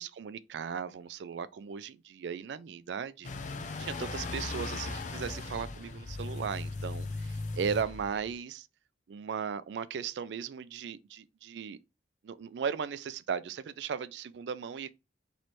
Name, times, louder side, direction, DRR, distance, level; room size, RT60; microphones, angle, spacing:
voice 1, 0.0-3.3 3.8-8.7 9.1-11.8 12.2-14.9, right 7 dB, 75° right, 0.4 m, -37 dB
sound 1, 3.2-8.3, left 3 dB, 45° left, 0.5 m, -38 dB
3.1 x 3.1 x 4.1 m
head